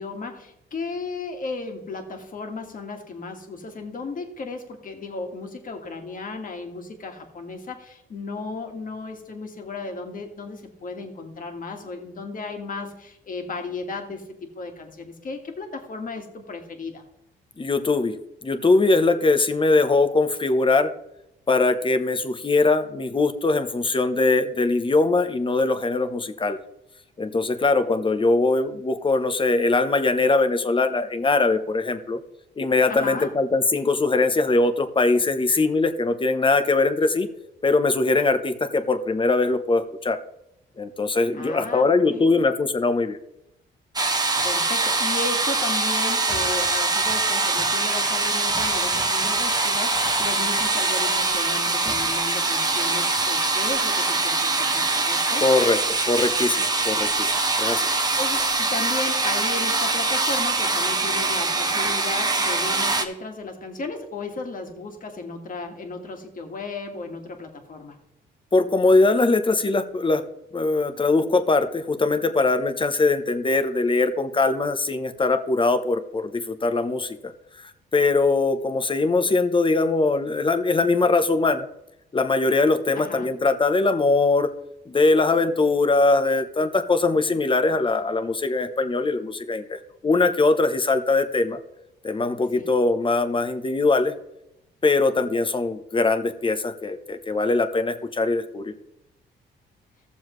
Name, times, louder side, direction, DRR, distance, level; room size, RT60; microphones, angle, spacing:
voice 1, 0.0-17.0 32.9-33.3 41.3-42.4 44.4-55.5 58.2-68.0 82.9-83.3 92.5-92.7, left 3 dB, 45° left, 4 dB, 1.9 m, -34 dB
voice 2, 17.6-18.2 18.4-20.9 21.5-26.6 27.2-32.2 32.6-37.3 37.6-40.2 40.8-43.2 55.4-55.8 56.1-57.9 68.5-70.2 70.5-77.3 77.6-81.7 82.1-84.5 84.9-89.8 90.0-91.6 92.0-94.1 94.8-98.7, left 3 dB, 25° left, 10 dB, 0.9 m, -21 dB
sound 1, 44.0-63.1, right 3 dB, 20° right, 1.0 m, -23 dB
15.0 x 7.1 x 3.2 m, 0.83 s
cardioid pair, 90°, 20 cm